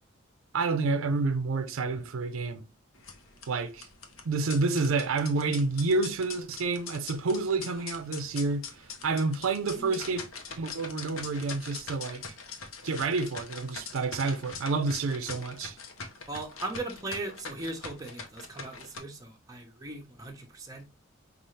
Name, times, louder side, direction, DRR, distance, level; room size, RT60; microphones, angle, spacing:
voice 1, 0.5-2.7 3.5-3.9 4.2-10.2 10.6-12.2 12.8-15.8, right 3 dB, 85° right, 0.5 m, -29 dB
sound 1, 2.9-19.0, left 5 dB, 85° left, 0.8 m, -43 dB
voice 2, 16.3-20.9, right 2 dB, 15° right, 0.7 m, -38 dB
5.3 x 2.4 x 3.1 m
head